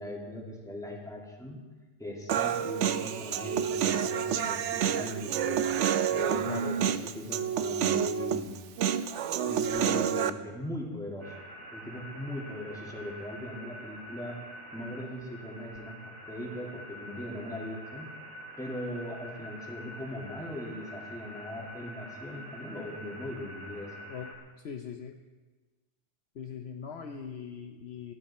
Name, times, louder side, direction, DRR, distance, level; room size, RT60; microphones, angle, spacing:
voice 1, 0.0-1.6 2.0-5.6 6.1-8.6 9.5-11.3 11.7-14.4 14.7-18.1 18.6-23.9, left 1 dB, 5° left, -2 dB, 2.4 m, -39 dB
Human voice, 2.3-10.3, right 8 dB, 75° right, 1.0 m, -29 dB
voice 2, 6.4-6.8 24.1-25.1 26.4-28.1, left 7 dB, 60° left, 4 dB, 1.0 m, -41 dB
sound 1, 11.2-24.4, equal, 45° right, 2.6 m, -46 dB
18.5 x 12.5 x 4.3 m, 1.3 s
omnidirectional pair, 1.3 m